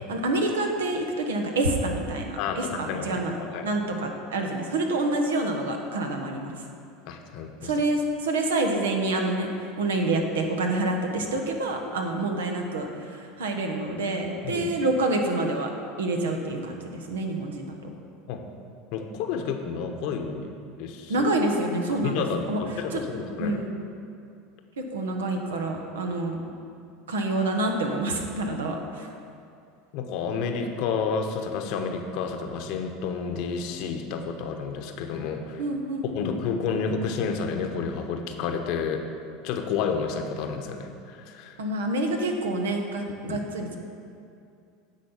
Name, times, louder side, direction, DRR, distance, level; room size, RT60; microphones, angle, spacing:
voice 1, 0.0-3.4 3.6-6.6 7.6-9.5 9.8-15.7 16.0-17.7 21.1-22.6 22.9-23.0 23.4-23.8 24.8-26.5 27.1-29.1 35.6-36.3 41.6-43.8, right 2 dB, 90° right, 3 dB, 1.0 m, -27 dB
voice 2, 2.4-3.7 7.0-7.7 14.4-14.7 18.3-18.4 18.9-20.5 20.8-21.3 22.0-23.6 29.9-35.6 36.1-39.0 39.4-41.6 43.3-43.4, left 5 dB, 65° left, 5 dB, 0.9 m, -30 dB
9.5 x 4.1 x 7.1 m, 2.5 s
hypercardioid pair, 95°, 0 cm